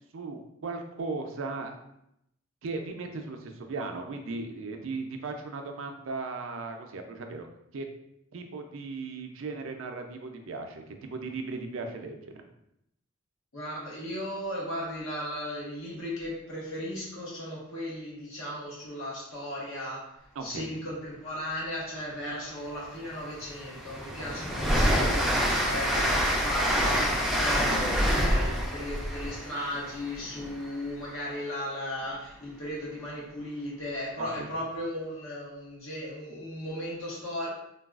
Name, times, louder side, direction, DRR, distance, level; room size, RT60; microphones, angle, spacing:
voice 1, 0.1-1.7 2.6-7.5 7.7-7.9 8.3-12.3 20.4-20.7 34.2-34.5, right 3 dB, 70° right, 4 dB, 0.4 m, -37 dB
voice 2, 13.5-20.1 20.4-37.5, left 1 dB, 80° left, -6 dB, 1.3 m, -36 dB
Train, 22.5-22.6 23.0-30.8, equal, ahead, 0.3 m, -27 dB
3.9 x 2.3 x 2.3 m, 0.80 s
head